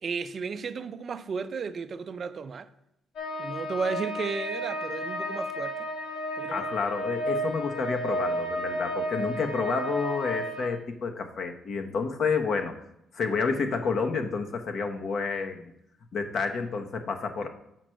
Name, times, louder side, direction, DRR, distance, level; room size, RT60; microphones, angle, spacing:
voice 1, 0.0-2.7 3.4-5.9 6.4-6.7 17.4-17.5, right 5 dB, 45° right, 0.4 m, -34 dB
sound 1, 3.2-10.7, equal, 85° left, 1.9 m, -32 dB
voice 2, 6.5-12.7 13.1-15.7 16.1-17.5, left 5 dB, 60° left, 0.9 m, -29 dB
6.0 x 4.5 x 6.3 m
cardioid pair, 90°, 0 cm